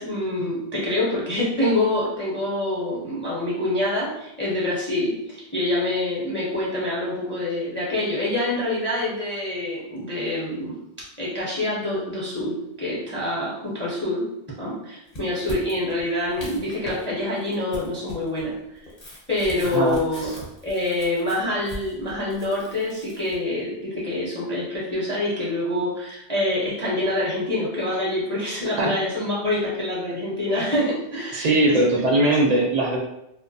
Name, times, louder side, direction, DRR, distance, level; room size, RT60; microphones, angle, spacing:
voice 1, 0.0-10.8 11.2-14.3 14.6-18.5 19.3-20.3 20.6-32.3, left 1 dB, 15° left, -6 dB, 0.4 m, -26 dB
sound 1, 15.1-17.0 17.4-23.4, equal, 40° left, 0.8 m, -40 dB
voice 2, 19.6-20.0 28.8-28.9 31.3-33.0, right 1 dB, 55° right, -1 dB, 0.5 m, -20 dB
2.5 x 2.1 x 2.6 m, 0.83 s
omnidirectional pair, 1.1 m